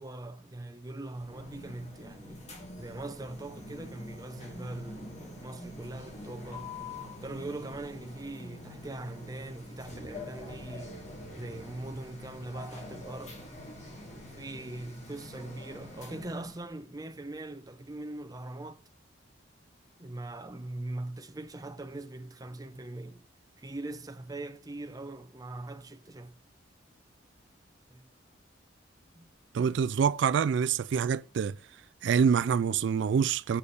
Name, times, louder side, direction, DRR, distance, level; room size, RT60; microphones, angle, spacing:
voice 1, 0.0-2.5 2.8-6.7 7.2-11.0 11.4-13.4 14.2-18.8 20.0-23.2 23.6-26.3 27.9-28.0 29.1-29.3, right 2 dB, 20° right, 0.7 m, -41 dB
sound 1, 1.1-16.7, left 1 dB, 35° left, 2.7 m, -45 dB
voice 2, 29.5-31.5 32.0-33.6, right 6 dB, 70° right, 0.3 m, -26 dB
7.0 x 6.5 x 5.3 m
head